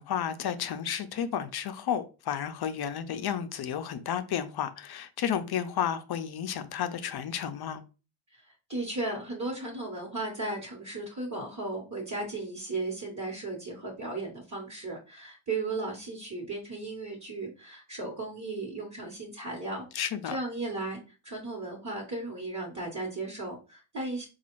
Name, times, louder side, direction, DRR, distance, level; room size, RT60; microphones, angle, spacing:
voice 1, 0.0-7.8 19.9-20.4, left 9 dB, 55° left, 0.5 m, -32 dB
voice 2, 8.7-19.8 20.2-21.0 21.2-24.3, right 2 dB, 35° right, 1.1 m, -35 dB
4.0 x 2.3 x 3.0 m
cardioid pair, 80°, 49 cm